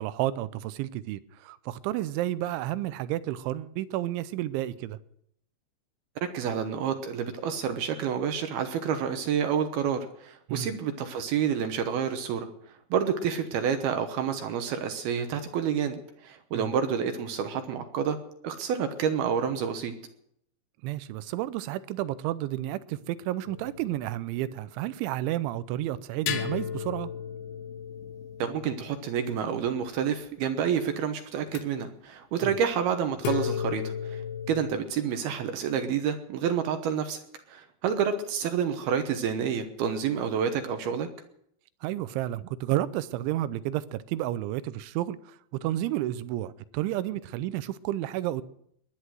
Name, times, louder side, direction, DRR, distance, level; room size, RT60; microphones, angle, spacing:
voice 1, 0.0-5.0 10.5-10.7 16.5-16.7 20.8-27.1 32.4-32.5 41.8-48.4, right 14 dB, 90° right, 3.1 m, -31 dB
voice 2, 6.2-12.5 12.9-18.2 18.4-20.0 28.4-34.2 34.5-37.2 37.5-41.1, right 7 dB, 70° right, 2.6 m, -29 dB
sound 1, 23.5-24.6 26.3-30.0 31.5-31.6 33.2-34.8, left 8 dB, 80° left, 3.3 m, -35 dB
20.5 x 10.5 x 6.3 m
omnidirectional pair, 5.3 m